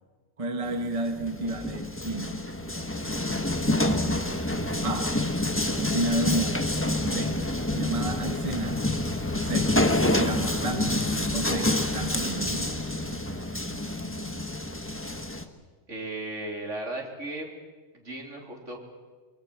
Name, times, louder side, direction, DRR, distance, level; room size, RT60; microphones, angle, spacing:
voice 1, 0.4-2.4 4.4-5.1 5.7-6.6 7.0-7.4 7.7-8.8 9.4-9.7 10.0-10.9 11.3-12.8, right 2 dB, 25° right, 5 dB, 1.5 m, -31 dB
sound 1, 0.7-15.4, left 1 dB, 10° left, 1.2 m, -28 dB
voice 2, 15.9-17.5 17.9-18.8, right 2 dB, 65° right, 1 dB, 3.8 m, -36 dB
23.5 x 23.5 x 7.6 m, 1.4 s
omnidirectional pair, 1.4 m